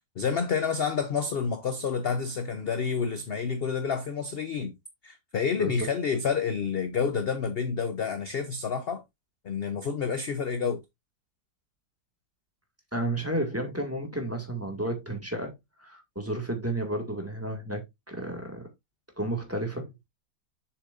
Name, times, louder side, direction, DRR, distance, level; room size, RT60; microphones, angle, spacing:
voice 1, 0.2-4.7 5.0-9.0 9.4-10.8, left 6 dB, 50° left, 0.7 m, -29 dB
voice 2, 12.9-15.5 15.8-18.7 19.2-19.9, right 1 dB, 10° right, 2.0 m, -32 dB
7.4 x 6.7 x 2.6 m
omnidirectional pair, 1.8 m